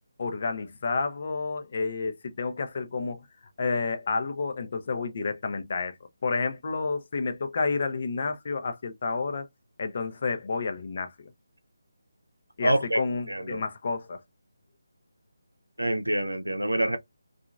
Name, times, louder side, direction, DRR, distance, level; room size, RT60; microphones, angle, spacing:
voice 1, 0.2-3.2 3.6-6.0 6.2-9.5 9.8-11.1 12.6-14.2, left 4 dB, 45° left, 0.7 m, -30 dB
voice 2, 12.6-13.0 13.3-13.6 15.8-17.0, right 1 dB, 90° right, 0.6 m, -26 dB
2.8 x 2.4 x 2.4 m
figure-of-eight pair, 155°, 0 cm